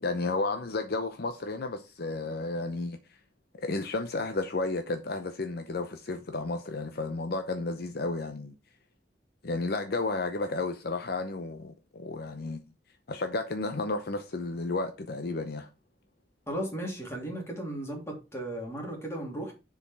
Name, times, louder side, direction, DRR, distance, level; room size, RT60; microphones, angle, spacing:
voice 1, 0.0-3.0 3.6-8.5 9.4-12.7 13.1-15.7, left 3 dB, 60° left, 0.7 m, -32 dB
voice 2, 16.5-19.5, right 1 dB, 15° left, 2.8 m, -35 dB
7.0 x 5.0 x 4.7 m
head